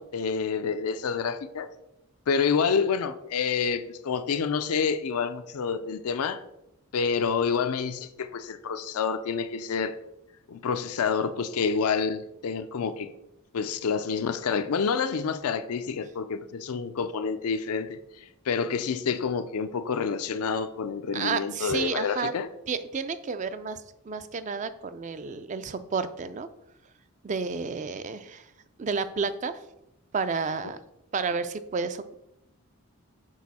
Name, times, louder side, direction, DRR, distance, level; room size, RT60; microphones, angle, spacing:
voice 1, 0.0-1.7 2.3-6.4 6.9-10.0 10.5-13.1 13.5-22.5, left 5 dB, 85° left, 0.4 m, -28 dB
voice 2, 21.1-22.3 22.7-23.8 24.1-26.5 27.2-28.5 28.8-29.6 30.1-30.8 31.1-32.1, right 5 dB, 35° right, 0.3 m, -31 dB
6.3 x 4.7 x 4.1 m
head